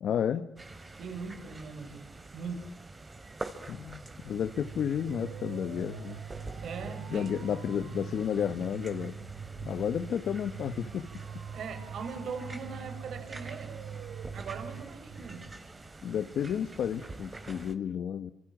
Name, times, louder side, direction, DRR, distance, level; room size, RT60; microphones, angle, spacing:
voice 1, 0.0-0.5 3.7-6.2 7.1-9.2 9.6-11.1 16.0-18.3, left 8 dB, 65° left, 9 dB, 1.4 m, -32 dB
sound 1, 0.6-17.7, right 2 dB, 25° right, 3.0 m, -46 dB
voice 2, 1.0-2.0 2.3-2.7 6.6-7.3 11.5-13.7 14.3-15.4, right 5 dB, 65° right, 9 dB, 5.9 m, -40 dB
sound 2, 4.0-15.9, right 7 dB, 85° right, 4.1 m, -43 dB
29.5 x 26.5 x 7.6 m, 0.71 s
cardioid pair, 90°, 0 cm